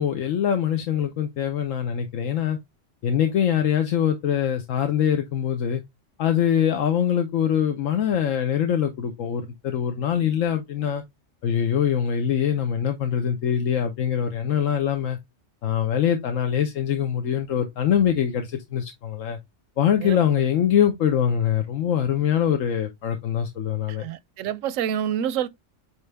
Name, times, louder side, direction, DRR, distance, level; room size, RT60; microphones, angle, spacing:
voice 1, 0.0-2.6 3.0-5.8 6.2-11.0 11.4-15.2 15.6-19.4 19.8-24.0, left 9 dB, 85° left, 1.2 m, -23 dB
voice 2, 24.0-25.5, right 9 dB, 85° right, 1.0 m, -27 dB
8.6 x 3.4 x 3.3 m
omnidirectional pair, 1.3 m